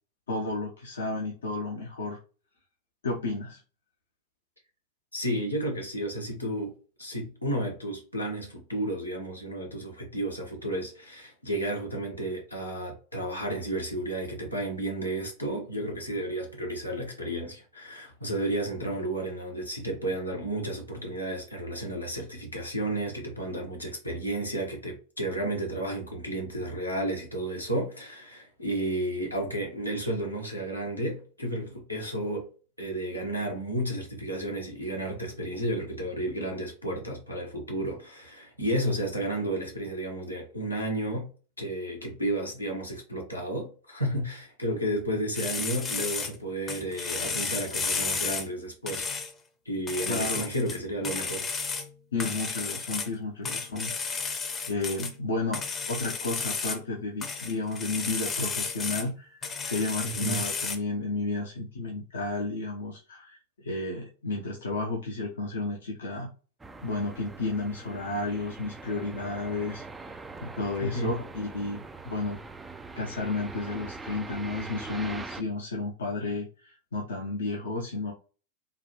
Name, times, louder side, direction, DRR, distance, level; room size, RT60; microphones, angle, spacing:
voice 1, 0.3-2.2 3.0-3.6 50.1-50.4 52.1-53.9 54.7-66.3 66.8-69.8 70.4-72.4 72.9-78.1, left 3 dB, 65° left, 0.6 m, -32 dB
voice 2, 5.1-32.5 32.8-41.3 41.6-49.1 49.6-51.4 60.0-60.4 70.8-71.1, right 1 dB, 85° left, 1.1 m, -32 dB
sound 1, 45.3-46.4 46.7-48.5 48.9-49.3 49.9-50.8 51.0-51.9 52.2-53.1 53.4-55.1 55.5-56.8 57.2-59.1 59.4-60.8, left 5 dB, 25° left, 0.7 m, -32 dB
sound 2, 66.6-75.4, right 3 dB, 10° right, 0.3 m, -42 dB
3.8 x 2.3 x 2.9 m
figure-of-eight pair, 90°, 0 cm